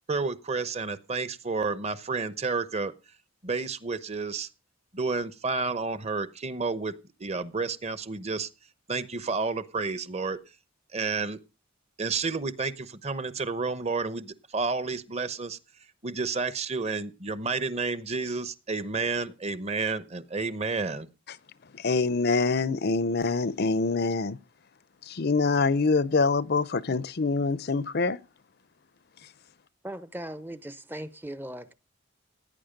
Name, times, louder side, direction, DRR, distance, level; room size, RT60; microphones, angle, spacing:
voice 1, 0.1-2.9 3.4-4.5 4.9-6.9 7.2-8.5 8.9-10.4 10.9-11.4 12.0-15.6 16.0-21.1, right 4 dB, 30° right, 0.9 m, -30 dB
voice 2, 21.6-24.4 25.0-28.2 29.2-29.3, left 4 dB, 45° left, 0.6 m, -25 dB
voice 3, 29.8-31.7, right 1 dB, 10° right, 0.6 m, -38 dB
17.0 x 9.6 x 5.2 m
head